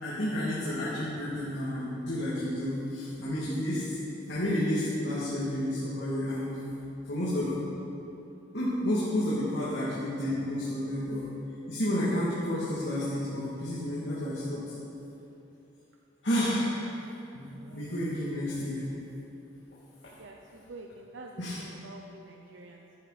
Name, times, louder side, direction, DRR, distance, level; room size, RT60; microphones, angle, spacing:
voice 1, 0.0-4.0 4.3-6.6 7.1-7.5 8.5-11.3 11.7-14.6 16.2-17.0 17.3-17.5 17.7-18.9 21.4-21.6, left 1 dB, 70° left, -9 dB, 2.7 m, -30 dB
voice 2, 20.1-23.0, right 2 dB, 80° right, 1 dB, 0.7 m, -48 dB
15.0 x 10.0 x 4.3 m, 3.0 s
head